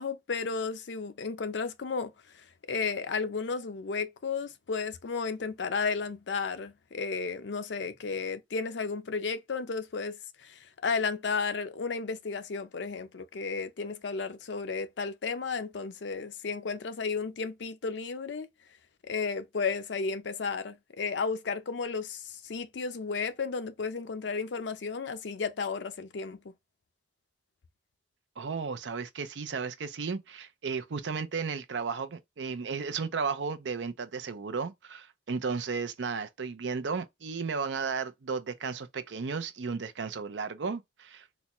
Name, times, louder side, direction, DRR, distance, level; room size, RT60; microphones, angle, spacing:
voice 1, 0.0-18.5 19.0-26.4, left 5 dB, 75° left, 0.5 m, -33 dB
voice 2, 28.4-41.3, right 5 dB, 85° right, 0.6 m, -34 dB
4.1 x 2.2 x 3.0 m
head